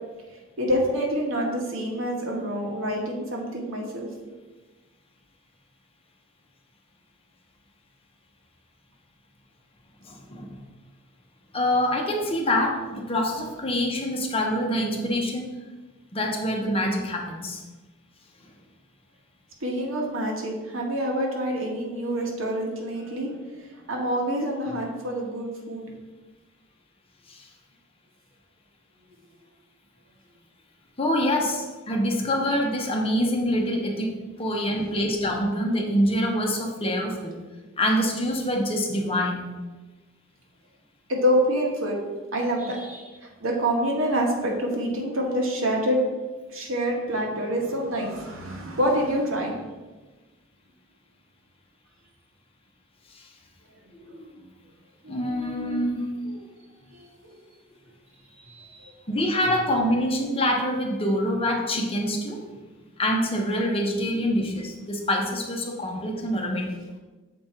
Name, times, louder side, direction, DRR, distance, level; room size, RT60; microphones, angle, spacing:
voice 1, 0.6-4.1 19.6-25.8 41.1-42.0 42.3-46.0 46.5-49.6 55.0-55.5 56.2-56.4 56.9-57.4 58.4-58.9, equal, 85° right, 0 dB, 1.4 m, -27 dB
voice 2, 10.0-10.6 11.5-15.5 16.1-17.6 27.3-27.4 31.0-37.4 37.8-39.5 53.1-53.3 53.9-54.3 55.1-56.1 59.1-62.5 63.0-66.7, equal, 30° left, 1 dB, 0.9 m, -25 dB
6.9 x 4.1 x 4.5 m, 1.2 s
head